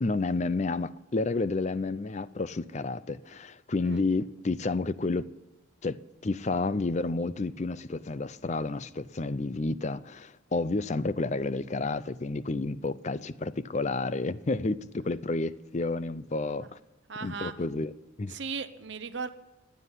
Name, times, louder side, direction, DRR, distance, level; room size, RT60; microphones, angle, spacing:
voice 1, 0.0-5.3 5.8-6.0 6.2-16.8 17.2-17.9 18.2-18.4, left 3 dB, 35° left, 0.5 m, -30 dB
voice 2, 17.1-17.5 18.3-19.3, right 5 dB, 60° right, 0.7 m, -36 dB
15.5 x 9.4 x 9.8 m
head